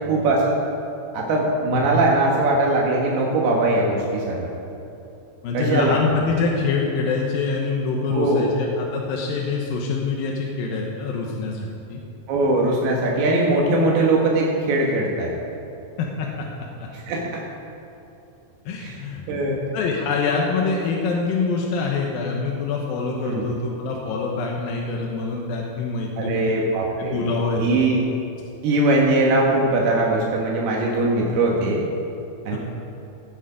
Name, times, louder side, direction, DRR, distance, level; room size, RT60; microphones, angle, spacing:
voice 1, 0.1-0.6 1.1-4.5 5.5-6.0 8.1-8.5 12.3-15.3 16.9-17.4 18.8-19.0 19.3-19.6 23.2-23.5 26.2-27.3 27.6-28.0 28.6-31.8 32.5-32.6, right 2 dB, 80° right, -2 dB, 3.4 m, -21 dB
voice 2, 5.4-12.0 16.0-16.5 16.8-16.9 18.7-19.3 19.7-26.5 27.0-27.8 32.5-32.6, left 4 dB, 75° left, -1 dB, 2.6 m, -25 dB
17.0 x 8.3 x 5.0 m, 2.9 s
omnidirectional pair, 4.6 m